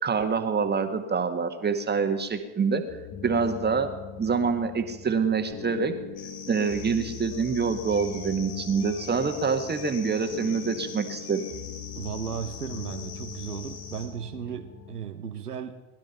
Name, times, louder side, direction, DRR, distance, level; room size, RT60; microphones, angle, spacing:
voice 1, 0.0-2.8 3.2-3.9 4.2-5.9 6.5-11.4, right 5 dB, 20° right, 1.7 m, -26 dB
sound 1, 2.9-15.0, left 7 dB, 45° left, 2.1 m, -41 dB
sound 2, 6.2-14.1, left 5 dB, 60° left, 3.6 m, -43 dB
voice 2, 12.0-15.9, right 8 dB, 90° right, 1.0 m, -35 dB
20.5 x 12.0 x 5.6 m
figure-of-eight pair, 75°, 45 cm